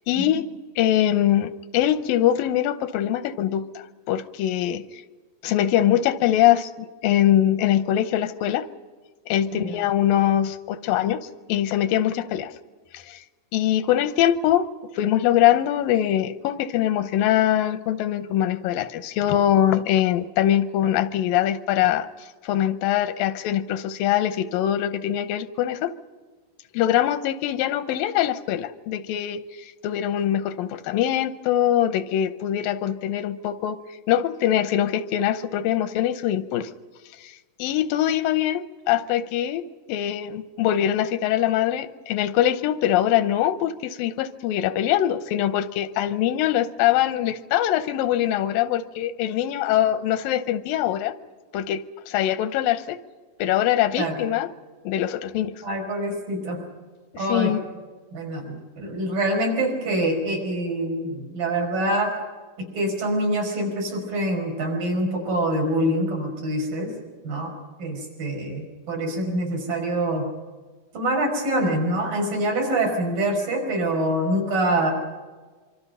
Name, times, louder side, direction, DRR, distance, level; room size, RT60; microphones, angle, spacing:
voice 1, 0.1-0.5 0.8-4.8 5.4-8.7 9.3-11.2 11.5-12.5 12.9-13.2 13.5-14.7 14.9-22.1 22.4-25.9 26.7-33.8 34.1-36.7 37.2-37.3 37.6-39.6 39.9-51.1 51.5-53.0 53.4-54.5 54.9-55.5 57.3-57.6, left 11 dB, 90° left, 12 dB, 2.6 m, -23 dB
voice 2, 55.6-56.6 57.2-57.5 58.1-62.2 62.6-66.9 67.2-67.5 67.8-70.3 70.9-74.9, right 1 dB, 75° right, 1 dB, 6.5 m, -25 dB
25.5 x 24.5 x 5.6 m, 1.4 s
omnidirectional pair, 4.0 m